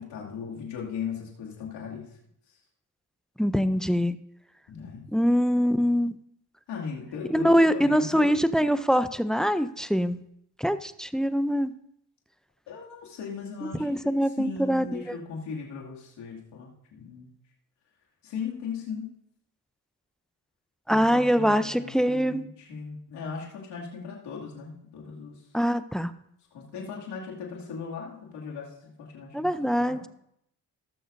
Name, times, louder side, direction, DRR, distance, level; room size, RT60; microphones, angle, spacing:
voice 1, 0.0-2.1 2.5-2.6 4.7-5.0 6.7-8.3 12.7-17.3 18.2-19.1 20.9-25.4 26.5-30.1, left 6 dB, 85° left, -3 dB, 2.6 m, -38 dB
voice 2, 3.4-4.2 5.1-6.1 7.3-10.2 10.6-11.7 13.8-15.2 20.9-22.4 25.5-26.1 29.3-30.1, equal, ahead, 13 dB, 0.5 m, -24 dB
19.0 x 6.7 x 2.7 m, 0.74 s
supercardioid pair, 65°, 40 cm